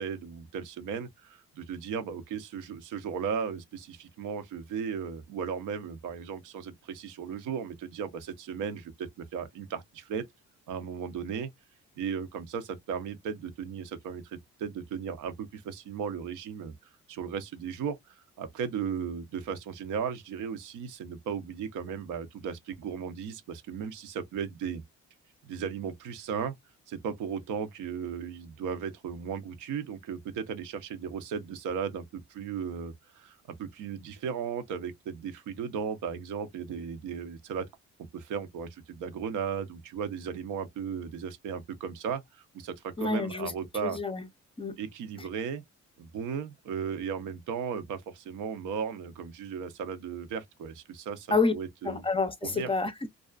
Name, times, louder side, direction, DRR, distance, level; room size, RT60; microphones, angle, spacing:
voice 1, 0.0-10.3 10.7-11.5 12.0-16.7 17.1-24.8 25.5-26.6 26.9-37.7 38.1-44.0 44.8-45.6 46.0-52.0 52.4-52.7, right 7 dB, 80° right, 0.6 m, -36 dB
voice 2, 43.0-43.5 43.8-44.3 44.6-44.8 45.2-45.3 51.3-51.5 51.8-53.1, left 3 dB, 20° left, 0.5 m, -28 dB
2.4 x 2.3 x 2.2 m
cardioid pair, 90°, 30 cm